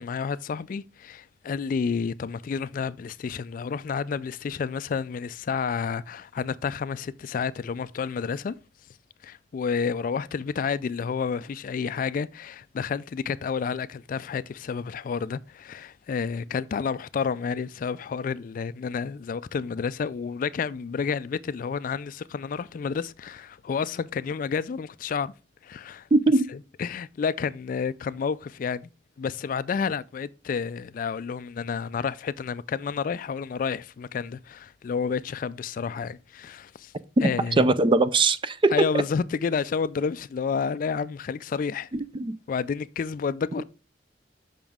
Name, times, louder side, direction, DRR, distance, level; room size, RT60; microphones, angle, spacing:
voice 1, 0.0-8.6 9.2-25.3 25.6-26.1 26.5-28.9 29.2-36.9 37.2-37.7 38.7-41.9 42.5-43.6, left 6 dB, 45° left, 0.3 m, -30 dB
voice 2, 26.1-26.5 37.2-37.3 37.6-38.9 42.1-42.4, right 2 dB, 25° right, 0.4 m, -20 dB
7.1 x 5.8 x 3.5 m
head